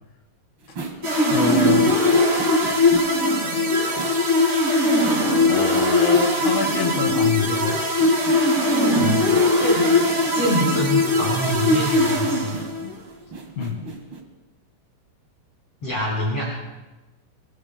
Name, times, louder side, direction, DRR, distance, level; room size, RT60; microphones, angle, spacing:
sound 1, 0.6-14.2, right 3 dB, 85° right, 1.1 m, -37 dB
sound 2, 1.0-12.9, left 2 dB, 40° right, 1.3 m, -20 dB
voice 1, 1.3-2.1 5.1-7.8 9.0-9.5 12.8-13.0 13.6-13.9, left 5 dB, 75° left, -4 dB, 4.1 m, -27 dB
voice 2, 9.6-10.0 10.3-12.6 15.8-16.5, equal, 30° left, -6 dB, 4.5 m, -25 dB
24.5 x 23.5 x 2.2 m, 1.1 s
omnidirectional pair, 5.5 m